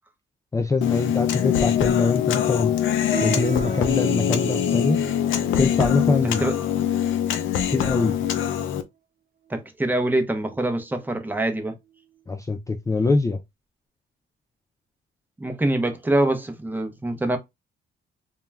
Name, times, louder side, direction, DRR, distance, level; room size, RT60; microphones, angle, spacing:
voice 1, 0.5-2.7 3.2-5.0 5.6-6.4 7.7-8.1 12.3-13.4, left 3 dB, 15° left, 0.3 m, -23 dB
Human voice, 0.8-8.8, left 10 dB, 75° left, 0.5 m, -23 dB
sound 1, 3.1-8.8 9.5-9.6 10.3-10.6 11.0-11.2 11.9-12.0, right 10 dB, 50° right, 0.6 m, -37 dB
voice 2, 6.2-6.6 9.5-11.8 15.4-17.4, right 1 dB, 10° right, 0.7 m, -24 dB
2.3 x 2.2 x 3.2 m
cardioid pair, 90°, 20 cm